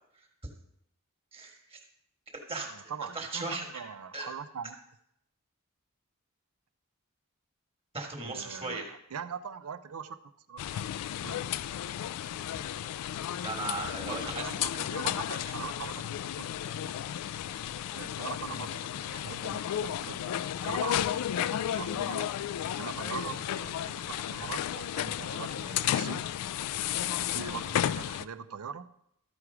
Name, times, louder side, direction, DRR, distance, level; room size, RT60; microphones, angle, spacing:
voice 1, 1.3-1.8 2.3-2.7 3.1-3.8 4.1-4.3 7.9-8.9 13.2-14.5, right 3 dB, 25° right, 2 dB, 1.6 m, -37 dB
voice 2, 2.7-4.8 8.2-10.2 10.5-10.6 11.2-11.5 14.0-16.9 17.9-20.2 20.6-22.3 22.7-26.3 27.2-28.9, right 6 dB, 70° right, 11 dB, 0.5 m, -42 dB
sound 1, 10.6-28.2, left 10 dB, 85° left, 0.3 m, -33 dB
13.0 x 4.7 x 4.9 m, 0.75 s
head